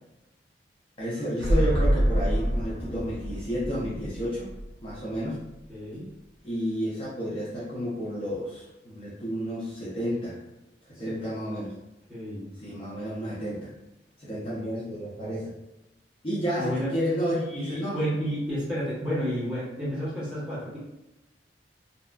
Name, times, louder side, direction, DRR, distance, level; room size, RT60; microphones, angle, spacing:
voice 1, 1.0-4.5 4.8-5.4 6.4-10.4 11.0-11.7 12.6-13.7 14.2-15.5 16.2-18.0, equal, 30° left, -8 dB, 0.5 m, -31 dB
sound 1, 1.4-5.2 5.4-5.5, equal, 75° right, 0.6 m, -26 dB
voice 2, 5.7-6.1 10.9-11.5 12.1-12.5 16.5-16.9 17.5-20.8, equal, 5° right, -11 dB, 1.2 m, -31 dB
2.7 x 2.3 x 2.2 m, 0.97 s
head